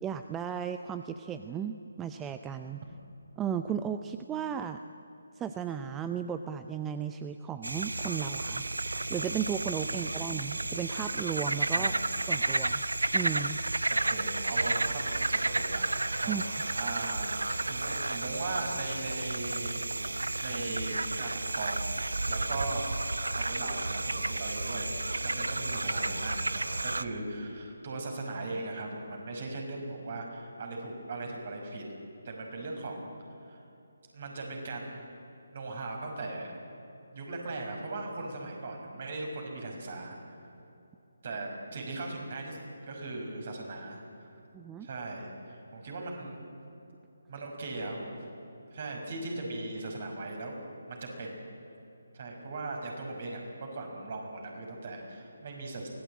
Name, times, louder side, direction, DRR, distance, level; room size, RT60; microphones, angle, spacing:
voice 1, 0.0-2.8 3.4-4.8 5.4-8.7 9.1-11.9 12.3-12.8 13.1-13.6 16.3-16.4 44.5-44.9, right 8 dB, 10° right, 9 dB, 0.6 m, -35 dB
sound 1, 7.6-27.0, right 2 dB, 75° right, 0.9 m, -32 dB
voice 2, 11.7-12.1 13.9-19.9 20.2-22.0 22.3-22.9 23.3-25.0 25.2-31.9 32.2-33.1 33.4-33.6 34.1-35.1 35.5-36.6 37.1-40.5 41.2-44.3 44.8-46.4 47.3-48.2 48.7-50.5 50.9-51.4 52.1-55.9, right 2 dB, 45° right, 1 dB, 5.8 m, -39 dB
24.0 x 18.0 x 8.6 m, 2.8 s
figure-of-eight pair, 150°, 0 cm